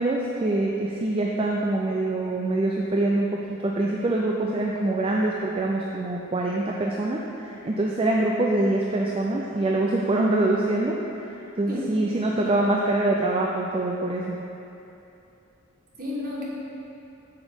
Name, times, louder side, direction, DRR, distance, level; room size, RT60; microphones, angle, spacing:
voice 1, 0.0-14.4, right 2 dB, 25° right, -1 dB, 0.4 m, -25 dB
voice 2, 11.7-12.6 16.0-16.4, left 2 dB, 45° right, -5 dB, 1.4 m, -33 dB
7.2 x 7.0 x 3.6 m, 2.9 s
head